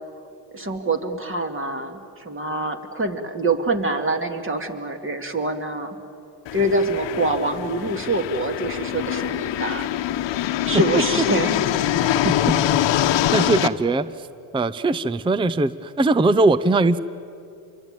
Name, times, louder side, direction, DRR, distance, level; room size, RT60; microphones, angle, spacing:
voice 1, 0.5-6.0 6.5-9.9 10.6-11.6, right 2 dB, 25° right, 6 dB, 2.6 m, -25 dB
sound 1, 6.5-13.7, left 12 dB, 65° left, 1.2 m, -24 dB
voice 2, 12.2-12.6 13.3-14.1 14.5-17.0, right 2 dB, 10° right, 16 dB, 0.6 m, -20 dB
27.5 x 23.5 x 9.1 m, 2.5 s
cardioid pair, 100°, 47 cm